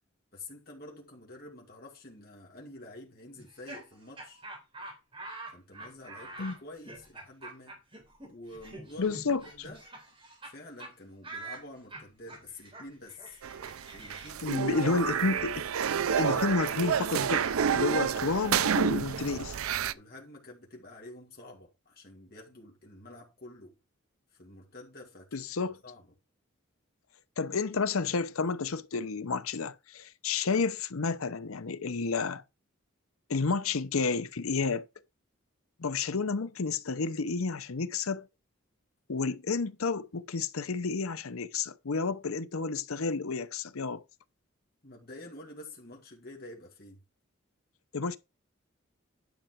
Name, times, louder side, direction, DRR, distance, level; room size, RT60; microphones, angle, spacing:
voice 1, 0.3-4.4 5.5-7.8 8.3-9.8 10.4-13.4 13.9-15.4 17.9-18.3 19.9-23.8 24.3-25.5 25.8-26.1 44.8-47.0, left 2 dB, 45° left, 2.3 m, -48 dB
Laughter, 3.4-10.5 10.8-10.9 11.2-17.0, right 2 dB, 25° right, 3.9 m, -47 dB
voice 2, 9.0-9.4 14.4-15.5 16.2-19.6 25.3-25.7 27.4-32.4 33.3-34.8 35.8-38.3 39.1-44.0 47.9-48.2, left 4 dB, 90° left, 0.7 m, -31 dB
sound 1, 13.4-19.9, right 7 dB, 85° right, 0.5 m, -29 dB
10.5 x 5.8 x 4.5 m
head